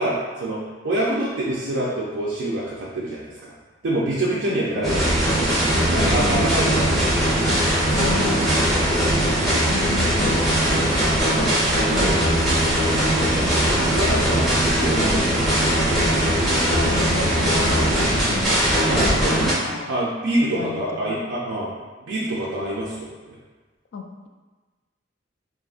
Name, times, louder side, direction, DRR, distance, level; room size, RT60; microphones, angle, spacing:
voice 1, 0.0-3.5 3.8-5.5 5.9-7.0 9.4-9.7 11.3-12.3 13.5-15.6 18.9-19.3 19.9-21.7 22.1-23.3, right 1 dB, 80° right, -6 dB, 0.5 m, -26 dB
voice 2, 4.3-5.0 5.9-6.8 7.5-7.6 7.9-8.9 9.6-11.0 16.7-19.9 20.4-21.3 23.9-24.3, left 4 dB, 65° left, 3 dB, 0.3 m, -32 dB
sound 1, 4.8-19.5, equal, ahead, 0.9 m, -20 dB
3.6 x 2.0 x 2.4 m, 1.3 s
head